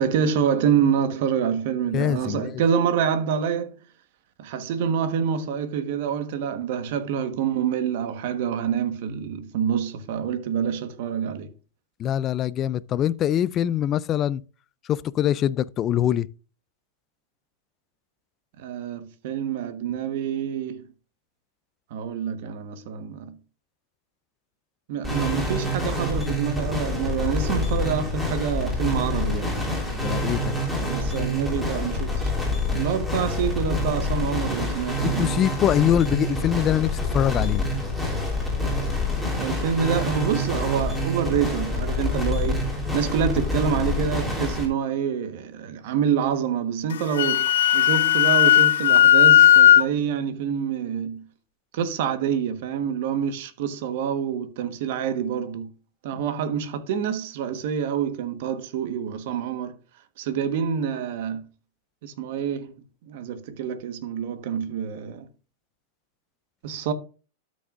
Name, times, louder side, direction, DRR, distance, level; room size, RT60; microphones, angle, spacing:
voice 1, 0.0-3.8 4.4-11.5 18.6-20.9 21.9-23.3 24.9-29.9 30.8-32.3 32.7-35.4 39.4-42.7 42.9-51.2 51.7-55.7 56.0-59.8 60.2-61.4 62.0-62.7 63.1-65.3 66.6-66.9, right 8 dB, 60° right, 1.2 m, -27 dB
voice 2, 1.9-2.5 12.0-14.4 14.9-16.3 29.9-30.5 35.0-37.6, left 10 dB, 30° left, 0.3 m, -23 dB
sound 1, 25.0-44.7, left 1 dB, ahead, 2.9 m, -27 dB
Wind instrument woodwind instrument, 46.9-49.8, left 11 dB, 90° left, 0.5 m, -15 dB
13.0 x 6.3 x 2.5 m
supercardioid pair, 150°, 0 cm